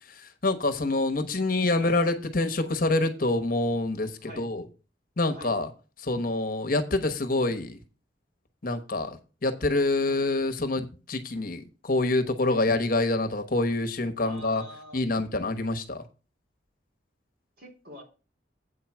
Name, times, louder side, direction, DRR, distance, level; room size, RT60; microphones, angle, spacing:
voice 1, 0.0-4.7 5.2-5.7 6.0-7.8 8.6-14.6 14.9-16.0, left 2 dB, 50° left, 7 dB, 1.1 m, -26 dB
voice 2, 14.2-15.0 17.6-18.0, equal, 55° right, 0 dB, 3.2 m, -44 dB
8.3 x 4.6 x 7.2 m, 0.34 s
head